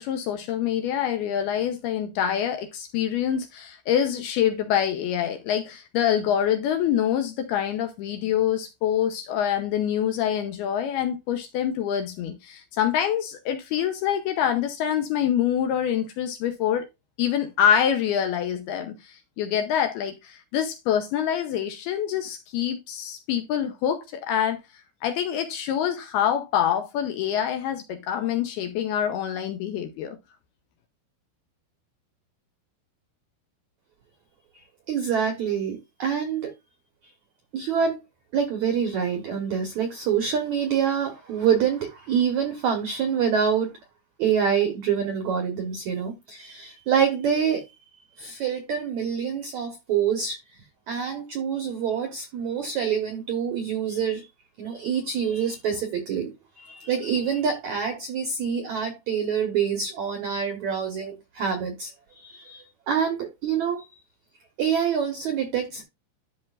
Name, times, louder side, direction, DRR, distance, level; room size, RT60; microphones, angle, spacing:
voice 1, 0.0-16.9 17.2-24.6 25.0-30.2, left 9 dB, 80° left, 2.5 m, -25 dB
voice 2, 34.9-36.5 37.5-38.0 38.3-43.7 44.2-47.7 48.2-50.4 50.9-54.3 54.6-63.9 64.6-65.8, right 7 dB, 70° right, 1.8 m, -26 dB
12.5 x 5.6 x 2.5 m
omnidirectional pair, 5.2 m